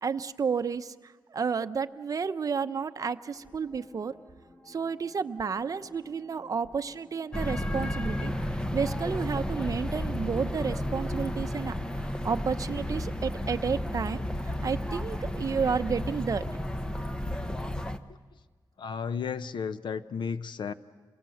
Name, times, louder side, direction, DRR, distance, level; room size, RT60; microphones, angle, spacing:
voice 1, 0.0-4.1 4.7-8.3 8.7-11.7 12.0-16.4, right 6 dB, 50° right, 9 dB, 0.8 m, -31 dB
sound 1, 3.2-14.2, left 1 dB, 30° left, 3.4 m, -57 dB
sound 2, 7.3-18.0, left 1 dB, 10° left, 0.9 m, -32 dB
voice 2, 18.8-20.7, left 6 dB, 90° left, 13 dB, 0.8 m, -33 dB
28.0 x 22.5 x 7.8 m, 1.4 s
wide cardioid pair, 150°, 8 cm